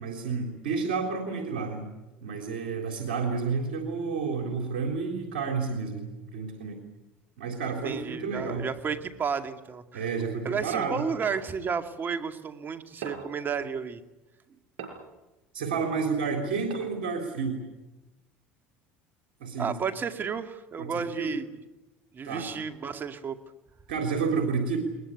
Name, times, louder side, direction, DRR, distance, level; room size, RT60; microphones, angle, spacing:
voice 1, 0.0-1.9 2.2-6.8 7.4-8.7 9.9-11.0 15.5-17.6 19.4-19.7 20.8-21.3 22.2-22.5 23.9-24.8, right 5 dB, 85° right, 3 dB, 3.6 m, -30 dB
voice 2, 7.8-10.0 10.4-14.0 19.6-21.4 22.1-23.4, right 6 dB, 35° right, 8 dB, 2.2 m, -32 dB
sound 1, 11.2-11.5 13.0-13.4 14.8-15.2 16.7-17.1, right 5 dB, 70° right, 5.8 m, -40 dB
21.5 x 20.5 x 9.8 m, 1.0 s
supercardioid pair, 85°, 6 cm